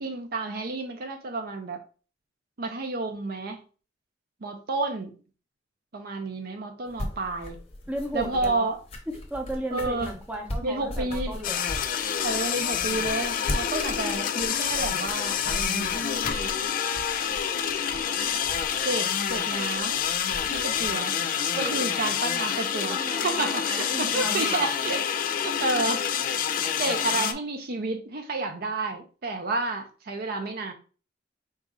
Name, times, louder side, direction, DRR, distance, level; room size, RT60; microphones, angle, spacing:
voice 1, 0.0-1.8 2.6-3.6 4.4-5.1 5.9-7.6 8.1-8.8 9.7-10.1 10.6-11.4 12.2-16.5 18.8-20.0 20.4-21.2 21.6-25.0 25.4-26.0 26.8-30.7, right 3 dB, 55° right, 0.6 m, -30 dB
sound 1, 6.9-20.9, left 1 dB, 30° left, 0.8 m, -38 dB
voice 2, 7.9-8.7 9.1-11.6 21.5-22.0 22.9-24.7 26.9-27.2, right 1 dB, 5° right, 0.7 m, -35 dB
sound 2, 11.4-27.3, left 8 dB, 45° left, 0.3 m, -27 dB
4.1 x 2.4 x 3.6 m
head